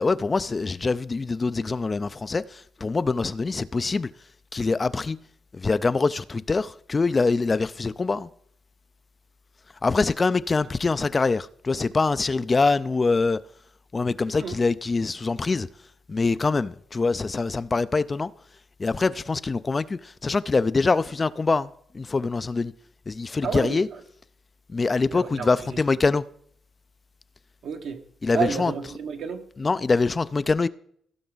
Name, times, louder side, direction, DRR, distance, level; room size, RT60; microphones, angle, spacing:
voice 1, 0.0-4.1 4.5-5.2 5.5-8.3 9.8-13.4 13.9-15.7 16.1-18.3 18.8-22.7 23.1-23.9 24.7-26.2 28.2-28.7 29.6-30.7, left 4 dB, 30° left, 0.3 m, -24 dB
voice 2, 23.4-24.0 25.1-25.8 27.6-28.0 28.3-29.4, right 6 dB, 65° right, 1.2 m, -31 dB
16.0 x 5.8 x 3.9 m
cardioid pair, 90°, 0 cm